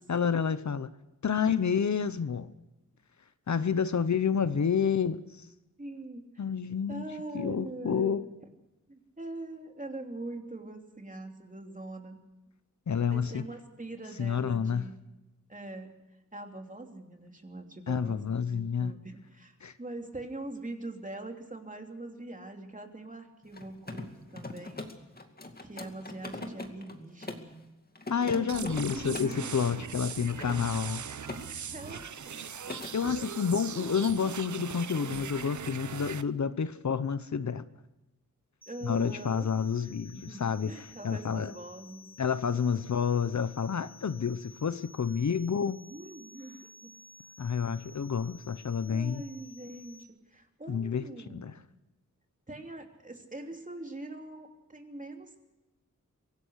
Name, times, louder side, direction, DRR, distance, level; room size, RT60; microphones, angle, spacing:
voice 1, 0.1-0.9 1.2-2.5 3.5-5.4 6.4-7.0 7.3-8.2 12.9-13.4 14.2-14.8 17.9-18.9 19.6-19.7 28.1-31.0 32.9-37.6 38.8-41.5 42.2-45.8 47.4-49.2 50.7-51.0 51.3-51.5, left 6 dB, 60° left, 0.9 m, -29 dB
voice 2, 5.8-6.4 6.9-8.2 8.9-12.2 13.1-15.2 15.5-15.9 16.3-24.8 25.6-27.5 28.3-29.5 31.5-32.5 33.7-33.9 38.7-39.5 39.8-42.1 45.9-46.9 48.9-50.0 50.3-51.5 52.5-55.4, right 2 dB, 25° right, 3.1 m, -43 dB
Mechanisms, 23.4-27.5 28.0-29.4 30.1-31.4 31.7-32.1 32.4-32.9, left 2 dB, 30° left, 2.3 m, -41 dB
sound 1, 28.5-36.2, right 7 dB, 65° right, 0.8 m, -40 dB
sound 2, 38.6-50.0, left 4 dB, 5° left, 2.1 m, -54 dB
24.5 x 17.5 x 6.5 m
wide cardioid pair, 120°, 32 cm